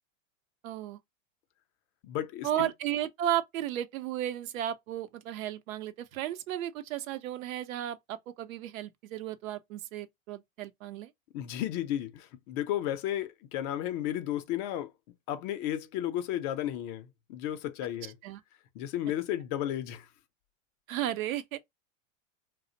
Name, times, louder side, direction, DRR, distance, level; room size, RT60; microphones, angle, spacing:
voice 1, 0.6-1.0 2.4-11.1 18.2-18.4 20.9-21.6, right 12 dB, 75° right, 0.6 m, -34 dB
voice 2, 2.0-2.7 11.3-14.9 15.3-18.2 18.8-20.1, left 12 dB, 45° left, 0.5 m, -33 dB
2.4 x 2.0 x 2.7 m
hypercardioid pair, 110°, 41 cm